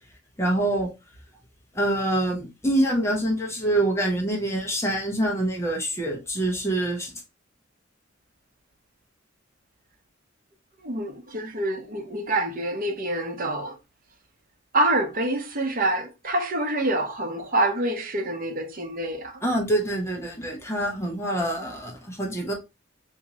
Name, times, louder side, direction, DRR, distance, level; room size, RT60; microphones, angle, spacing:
voice 1, 0.4-0.9 1.7-7.1 19.4-22.5, right 1 dB, 15° left, 0.9 m, -25 dB
voice 2, 10.8-13.7 14.7-19.4, right 1 dB, 45° right, 0.8 m, -26 dB
3.6 x 2.7 x 2.9 m
head